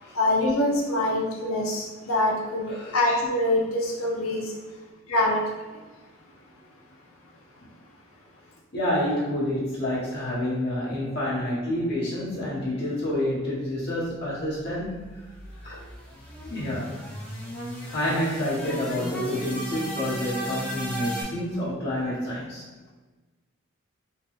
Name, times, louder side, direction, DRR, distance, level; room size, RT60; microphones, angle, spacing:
voice 1, 0.1-4.5 5.1-5.8, left 1 dB, 90° left, -1 dB, 0.7 m, -25 dB
voice 2, 8.7-15.2 15.6-15.8 16.5-17.0 17.8-22.6, left 1 dB, 50° left, -7 dB, 1.3 m, -28 dB
sound 1, 14.8-21.2, equal, 5° left, 0.7 m, -35 dB
3.7 x 2.3 x 3.2 m, 1.2 s
head